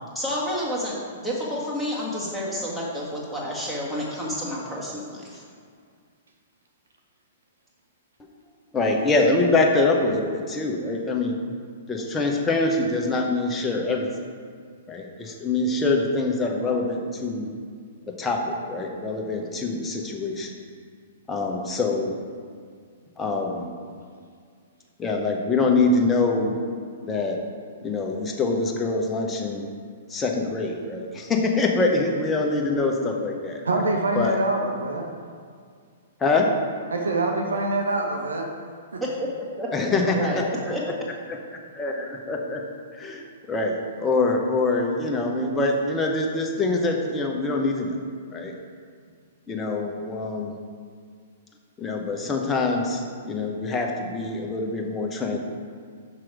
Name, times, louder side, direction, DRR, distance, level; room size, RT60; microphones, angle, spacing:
voice 1, 0.1-5.4 39.0-39.3 39.6-40.4 40.7-40.8, equal, 5° right, -6 dB, 1.8 m, -30 dB
voice 2, 8.7-11.4 11.9-14.1 14.9-17.5 18.1-20.5 21.3-22.2 23.2-23.7 25.0-26.6 27.0-27.4 27.8-29.7 30.1-33.6 34.1-34.4 36.2-36.6 39.7-40.7 41.3-41.4 41.8-42.6 42.9-48.0 48.3-48.5 49.5-50.6 51.8-55.4, left 3 dB, 15° left, 1 dB, 1.0 m, -24 dB
voice 3, 33.6-35.1 36.9-38.5 38.9-39.0, right 2 dB, 75° right, 2 dB, 0.9 m, -25 dB
6.1 x 6.1 x 4.8 m, 2.1 s
figure-of-eight pair, 110°, 0 cm